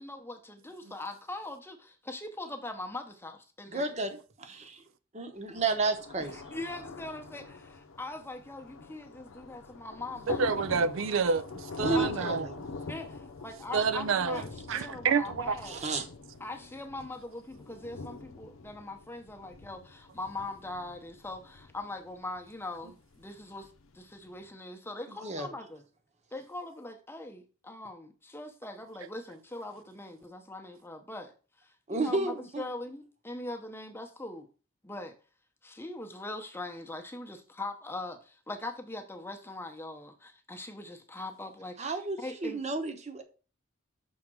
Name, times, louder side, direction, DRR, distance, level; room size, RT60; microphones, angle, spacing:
voice 1, 0.0-3.8 6.2-10.4 10.7-10.9 11.9-12.1 12.9-15.7 16.4-23.7 23.9-25.8 26.3-31.3 31.6-34.5 34.8-35.1 35.6-42.6, left 2 dB, 10° left, 0.8 m, -41 dB
voice 2, 3.7-4.1 4.4-4.8 5.2-6.4 11.8-12.6 15.7-16.1 25.1-25.5 31.9-32.7 41.8-43.2, right 3 dB, 35° right, 0.9 m, -32 dB
Thunder, 5.5-24.4, left 4 dB, 90° left, 0.7 m, -44 dB
voice 3, 10.3-12.5 13.7-14.4 14.7-15.8, right 5 dB, 75° right, 0.4 m, -29 dB
6.3 x 3.6 x 6.1 m
head